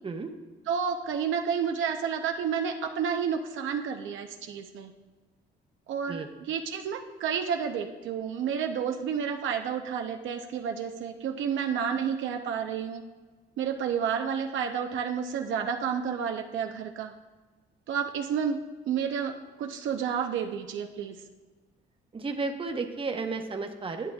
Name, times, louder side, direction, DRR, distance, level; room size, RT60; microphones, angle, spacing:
voice 1, 0.7-4.9 5.9-13.0 13.6-17.1 17.9-18.6 18.9-21.2, right 7 dB, 75° right, 4 dB, 0.6 m, -30 dB
voice 2, 22.1-24.1, right 4 dB, 25° right, 4 dB, 0.9 m, -33 dB
11.0 x 8.6 x 2.3 m, 1.3 s
cardioid pair, 90°, 20 cm